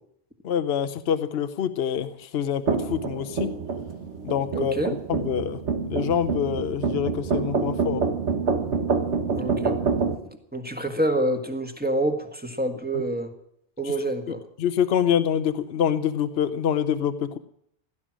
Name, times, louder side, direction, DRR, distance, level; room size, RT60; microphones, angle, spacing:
voice 1, 0.4-3.5 4.2-4.7 5.1-8.0 12.9-13.0 14.3-17.4, left 8 dB, 65° left, 12 dB, 1.0 m, -26 dB
sound 1, 2.7-10.2, right 5 dB, 85° right, 1.7 m, -27 dB
voice 2, 4.5-4.9 9.3-9.7 10.5-13.3 13.8-14.4, right 1 dB, 10° right, 5 dB, 1.6 m, -27 dB
16.5 x 12.0 x 6.3 m, 0.73 s
omnidirectional pair, 1.1 m